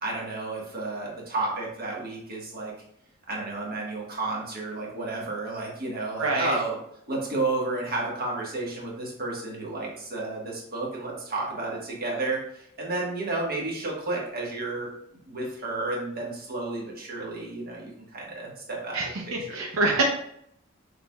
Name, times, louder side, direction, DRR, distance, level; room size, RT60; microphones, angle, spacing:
voice 1, 0.0-2.7 3.3-6.8 7.1-14.9 15.3-19.0 19.5-19.6, right 2 dB, 45° right, -3 dB, 1.3 m, -31 dB
voice 2, 6.2-6.6 18.9-20.0, right 3 dB, 80° right, -1 dB, 0.7 m, -26 dB
6.7 x 3.4 x 2.3 m, 0.72 s
head